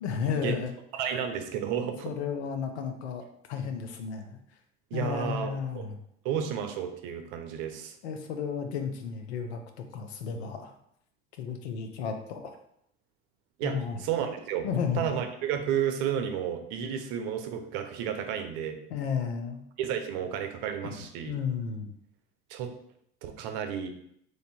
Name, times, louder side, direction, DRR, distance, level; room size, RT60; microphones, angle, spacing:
voice 1, 0.0-0.8 2.0-3.2 3.5-4.4 4.9-6.0 8.0-9.6 9.9-10.7 11.4-12.6 13.6-14.0 14.6-15.0 18.9-19.6 20.8-21.9, left 6 dB, 85° left, 6 dB, 0.6 m, -33 dB
voice 2, 0.9-2.1 4.9-5.9 6.2-7.9 13.6-14.7 15.0-18.8 19.8-21.4 22.5-22.7 23.2-23.9, right 8 dB, 65° right, 7 dB, 0.7 m, -32 dB
3.2 x 2.6 x 4.1 m, 0.72 s
hypercardioid pair, 85°, 32 cm